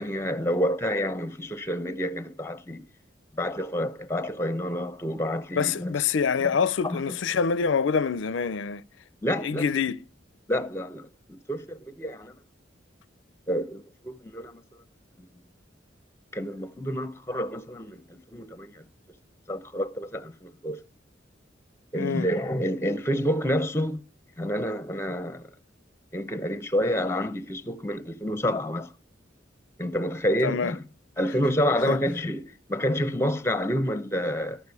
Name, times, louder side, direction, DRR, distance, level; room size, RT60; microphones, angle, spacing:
voice 1, 0.0-2.8 3.3-6.0 6.8-7.0 9.2-9.7 10.5-12.4 13.5-14.6 16.3-18.9 19.5-20.8 21.9-24.0 24.4-25.5 26.1-28.9 29.8-30.8 31.2-34.6, equal, 15° left, 0.8 m, -28 dB
voice 2, 5.6-8.8 9.4-10.0 22.0-22.3 30.4-30.7 31.9-32.0, left 6 dB, 85° left, 0.5 m, -26 dB
12.5 x 6.7 x 8.2 m
head